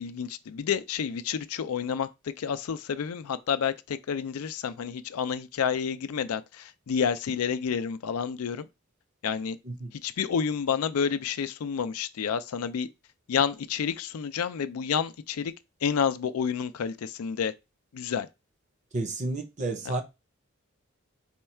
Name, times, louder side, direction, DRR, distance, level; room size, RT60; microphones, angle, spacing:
voice 1, 0.0-8.7 9.2-9.6 10.0-12.9 13.3-15.5 15.8-17.5 17.9-18.3, left 7 dB, 85° left, 0.4 m, -29 dB
voice 2, 18.9-20.0, right 2 dB, 35° right, 0.6 m, -31 dB
4.3 x 2.3 x 4.3 m
head